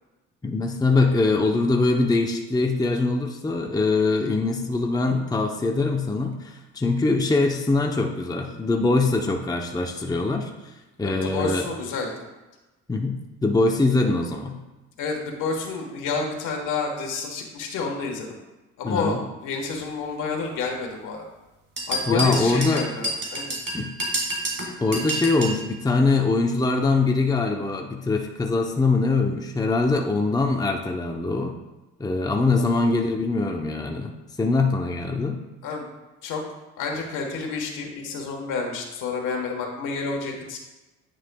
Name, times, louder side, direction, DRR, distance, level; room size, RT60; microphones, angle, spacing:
voice 1, 0.4-10.5 11.0-11.7 12.9-13.2 13.4-14.6 18.8-19.2 22.1-22.9 23.7-23.9 24.8-31.6 32.0-34.1 34.4-35.4, left 3 dB, 15° left, 2 dB, 0.7 m, -23 dB
voice 2, 11.0-12.1 15.0-18.4 18.8-21.2 21.9-23.6 32.5-33.0 35.6-35.8 36.2-36.4 36.8-40.6, left 4 dB, 90° left, 1 dB, 1.4 m, -29 dB
sound 1, 21.8-25.6, right 1 dB, 40° right, 2.0 m, -28 dB
9.7 x 6.4 x 2.3 m, 1.1 s
cardioid pair, 90°, 30 cm